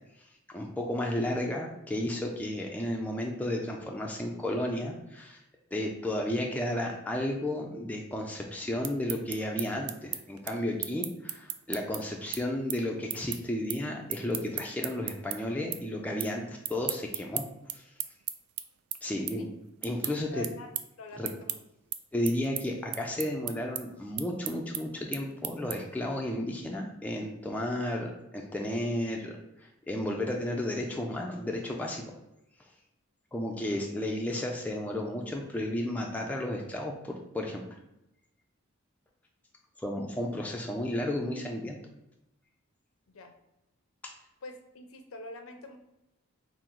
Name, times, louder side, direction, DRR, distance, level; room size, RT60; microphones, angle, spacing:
voice 1, 0.5-5.4 5.7-17.4 17.7-17.8 19.0-19.5 19.8-20.5 21.2-21.3 22.1-32.1 33.3-37.6 39.8-41.8 44.0-44.1, left 1 dB, 5° left, 0 dB, 0.3 m, -33 dB
sound 1, 8.6-15.4 15.7-16.3 16.6-26.0, right 12 dB, 90° right, 0.3 m, -36 dB
voice 2, 20.3-20.7 21.0-21.6 43.1-43.3 44.4-45.8, left 2 dB, 70° left, 5 dB, 0.5 m, -45 dB
3.8 x 2.0 x 4.4 m, 0.90 s
head